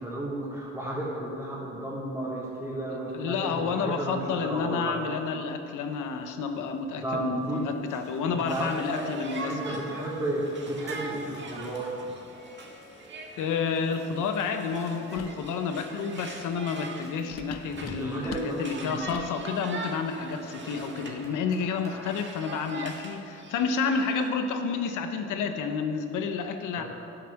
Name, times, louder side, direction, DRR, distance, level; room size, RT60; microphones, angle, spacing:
voice 1, 0.0-4.9 7.0-7.6 7.9-8.0 8.2-9.1 9.4-11.9 17.9-19.0 26.8-26.9, right 1 dB, 5° right, -11 dB, 3.3 m, -33 dB
voice 2, 3.1-9.8 13.4-26.8, left 5 dB, 85° left, 7 dB, 1.1 m, -30 dB
sound 1, 5.9-24.9, equal, 10° left, 2.2 m, -52 dB
Conversation, 8.5-21.3 21.6-24.3, right 3 dB, 40° right, 1.7 m, -43 dB
sound 2, 15.1-15.5 17.3-19.4, left 8 dB, 55° left, 0.7 m, -42 dB
10.5 x 9.0 x 6.6 m, 2.7 s
cardioid pair, 90°, 30 cm